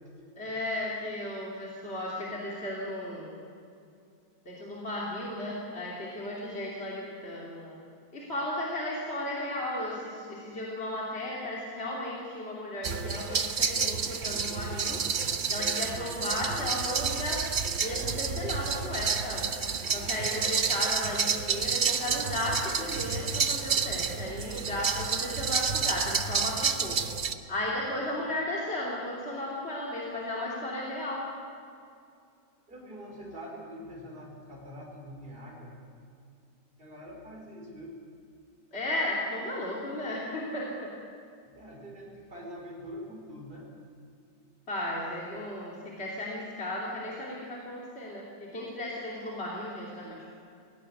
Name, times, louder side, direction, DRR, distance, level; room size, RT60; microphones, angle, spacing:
voice 1, 0.4-3.3 4.4-7.8 8.1-15.0 15.5-17.4 17.8-19.5 19.9-27.0 27.5-31.3 38.7-41.0 44.7-50.3, left 1 dB, 35° left, -4 dB, 3.1 m, -35 dB
sound 1, 12.8-27.3, right 5 dB, 50° right, 0.6 m, -30 dB
voice 2, 32.7-35.8 36.8-38.0 41.5-43.7 48.5-48.6 49.2-49.3 50.0-50.2, equal, 30° right, -2 dB, 4.6 m, -44 dB
17.0 x 17.0 x 9.8 m, 2.4 s
omnidirectional pair, 2.0 m